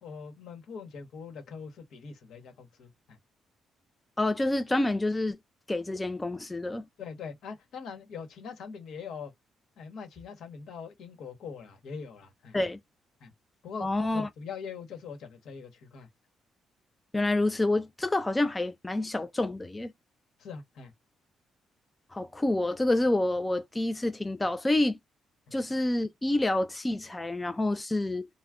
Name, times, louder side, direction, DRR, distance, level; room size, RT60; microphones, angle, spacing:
voice 1, 0.0-3.2 7.0-9.3 9.8-12.6 13.2-13.3 13.6-16.1 20.4-20.9, left 6 dB, 75° left, 1.0 m, -42 dB
voice 2, 4.2-5.4 5.7-6.8 12.5-12.8 13.8-14.3 17.1-19.9 22.1-25.0 25.5-28.3, left 2 dB, 15° left, 0.3 m, -28 dB
2.4 x 2.1 x 3.4 m
cardioid pair, 90°, 0 cm